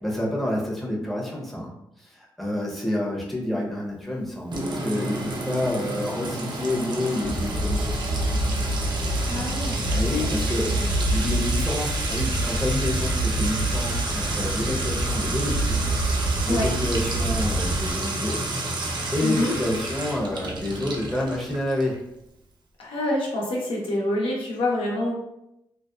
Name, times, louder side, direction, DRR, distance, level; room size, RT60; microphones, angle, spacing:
voice 1, 0.0-1.7 2.0-7.8 9.9-10.7 11.1-15.8 16.4-18.4 19.1-22.0, left 1 dB, ahead, -3 dB, 0.7 m, -28 dB
Sink (filling or washing) / Trickle dribble / Fill (with liquid), 4.5-22.0, right 2 dB, 60° right, 0.5 m, -30 dB
sound 1, 7.2-17.9, right 1 dB, 50° left, 0.7 m, -27 dB
voice 2, 9.2-10.3 10.6-10.9 15.2-15.3 16.5-16.7 19.2-19.6 22.8-25.1, left 1 dB, 85° left, -3 dB, 0.7 m, -27 dB
2.6 x 2.1 x 2.2 m, 0.84 s
cardioid pair, 75°, 9 cm